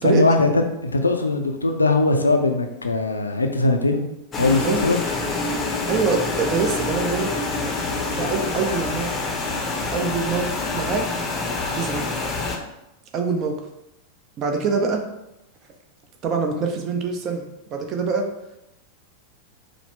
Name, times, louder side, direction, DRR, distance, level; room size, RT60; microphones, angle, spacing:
voice 1, 0.0-4.1 4.4-5.0, left 2 dB, 80° left, 5 dB, 0.4 m, -20 dB
sound 1, 4.3-12.6, left 3 dB, 20° left, 0.7 m, -26 dB
voice 2, 5.9-7.3 8.1-9.1 9.9-10.5 10.7-11.1 11.7-12.1 13.1-13.6 14.4-15.0 16.2-18.3, right 5 dB, 35° right, 4 dB, 0.6 m, -24 dB
4.8 x 2.1 x 3.5 m, 0.89 s
figure-of-eight pair, 90°, 0 cm